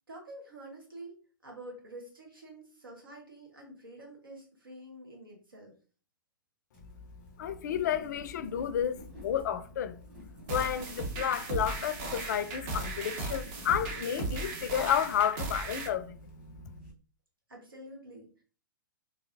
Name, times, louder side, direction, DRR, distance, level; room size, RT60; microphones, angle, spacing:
voice 1, 0.1-5.7 17.5-18.4, right 1 dB, 80° right, 1.1 m, -48 dB
sound 1, 6.7-16.9, left 1 dB, 5° right, 1.0 m, -49 dB
voice 2, 7.4-16.2, left 9 dB, 55° left, 0.4 m, -31 dB
sound 2, 10.5-15.9, right 3 dB, 40° right, 0.8 m, -37 dB
3.9 x 2.8 x 2.5 m
figure-of-eight pair, 110°, 11 cm